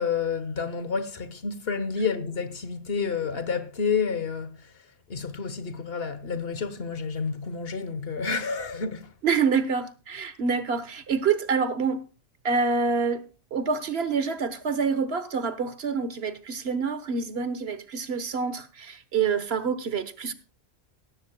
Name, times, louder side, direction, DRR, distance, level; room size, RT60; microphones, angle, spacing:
voice 1, 0.0-4.6 5.1-9.1, left 5 dB, 65° left, 1.4 m, -29 dB
voice 2, 9.2-12.0 12.4-13.3 13.5-20.3, right 5 dB, 75° right, 1.4 m, -27 dB
17.0 x 13.5 x 2.2 m
omnidirectional pair, 1.1 m